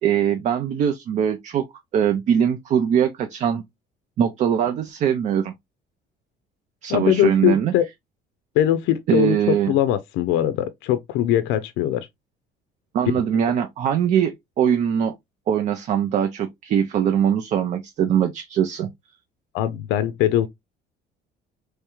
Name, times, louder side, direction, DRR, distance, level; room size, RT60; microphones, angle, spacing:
voice 1, 0.0-1.6 1.9-3.6 4.2-5.5 6.8-7.7 9.1-9.7 12.9-15.1 15.5-18.9, right 8 dB, 40° right, 0.4 m, -21 dB
voice 2, 6.9-7.8 8.6-12.1 19.5-20.5, left 12 dB, 90° left, 0.5 m, -21 dB
3.5 x 3.2 x 3.0 m
cardioid pair, 175°, 18 cm